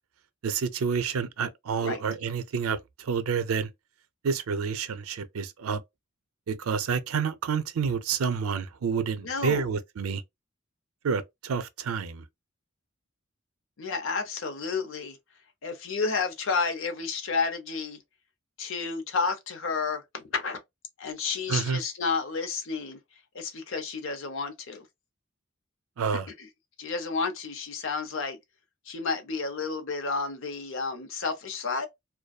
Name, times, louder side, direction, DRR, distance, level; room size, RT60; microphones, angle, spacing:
voice 1, 0.4-3.7 4.2-5.8 6.5-10.2 11.0-12.2 21.5-21.8 26.0-26.3, right 6 dB, 85° right, 0.4 m, -29 dB
voice 2, 9.2-9.7 13.8-15.2 15.6-18.0 18.6-20.6 21.0-23.0 23.3-24.8 26.4-26.5 26.8-28.4 28.9-31.9, left 4 dB, 65° left, 0.7 m, -31 dB
2.6 x 2.2 x 2.2 m
head